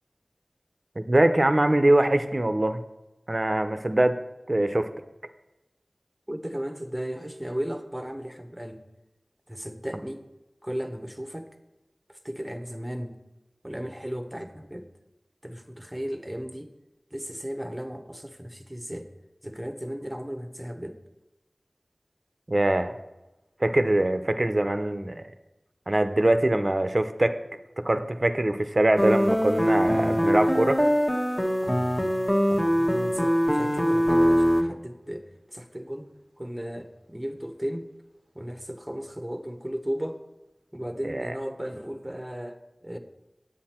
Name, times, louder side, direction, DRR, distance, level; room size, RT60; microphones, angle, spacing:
voice 1, 1.0-2.8 3.3-4.2 4.5-4.9 22.5-22.9 23.6-25.2 25.9-27.4 27.8-30.8 41.1-41.3, right 1 dB, 45° right, 9 dB, 0.7 m, -23 dB
voice 2, 6.3-8.9 9.5-10.2 10.6-11.5 12.1-13.2 13.6-14.9 15.4-16.7 17.1-19.1 19.4-21.0 31.6-32.0 32.5-36.1 36.4-37.9 38.3-40.2 40.7-43.0, equal, 10° right, 7 dB, 1.0 m, -35 dB
sound 1, 29.0-34.6, equal, 15° left, 1.3 m, -23 dB
9.7 x 8.3 x 4.4 m, 1.0 s
wide cardioid pair, 55°, 0 cm